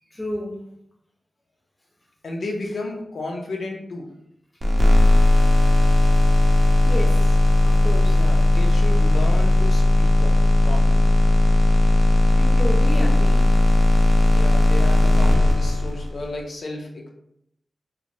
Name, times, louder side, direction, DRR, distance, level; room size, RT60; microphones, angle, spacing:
voice 1, 0.1-0.6 6.9-7.3 7.6-8.2 12.4-13.5, equal, 20° left, 0.5 m, -31 dB
voice 2, 2.2-4.1 8.1-11.0 14.2-17.1, left 2 dB, 70° left, 0.5 m, -33 dB
sound 1, 4.6-16.3, left 1 dB, 35° right, 0.5 m, -17 dB
3.1 x 2.1 x 2.6 m
wide cardioid pair, 125°, 0 cm